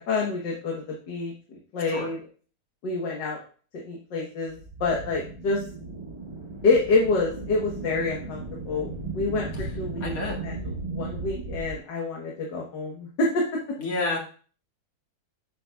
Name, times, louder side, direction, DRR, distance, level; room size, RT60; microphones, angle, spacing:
voice 1, 0.0-2.2 2.8-3.4 3.8-5.6 6.6-9.5 9.8-10.2 10.4-10.6 10.9-13.4, left 3 dB, 85° left, -2 dB, 1.9 m, -27 dB
sound 1, 4.5-11.8, right 3 dB, 20° right, 1.1 m, -36 dB
voice 2, 10.0-10.4 13.8-14.2, left 3 dB, 55° left, -2 dB, 2.4 m, -29 dB
8.2 x 6.9 x 2.3 m, 0.40 s
omnidirectional pair, 1.8 m